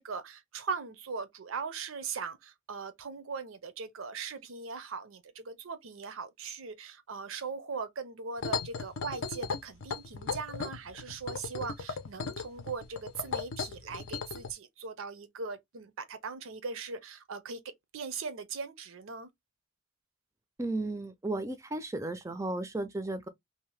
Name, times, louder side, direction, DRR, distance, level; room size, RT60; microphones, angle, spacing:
voice 1, 0.0-17.6 17.9-19.3, right 5 dB, 80° right, 0.6 m, -39 dB
sound 1, 8.4-14.5, left 5 dB, 80° left, 0.5 m, -36 dB
voice 2, 20.6-23.3, right 2 dB, 15° right, 0.4 m, -34 dB
2.7 x 2.1 x 3.1 m
head